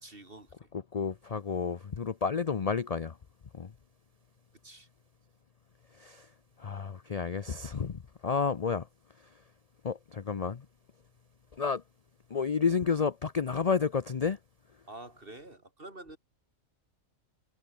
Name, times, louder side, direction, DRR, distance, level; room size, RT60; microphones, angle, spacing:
voice 1, 0.0-0.5 4.6-4.9 14.9-16.2, right 2 dB, 40° right, 4.2 m, -47 dB
voice 2, 0.7-3.2 3.5-3.7 5.9-6.3 6.6-8.9 9.8-10.7 11.5-11.8 12.3-14.4, left 6 dB, 40° left, 0.6 m, -31 dB
omnidirectional pair, 1.4 m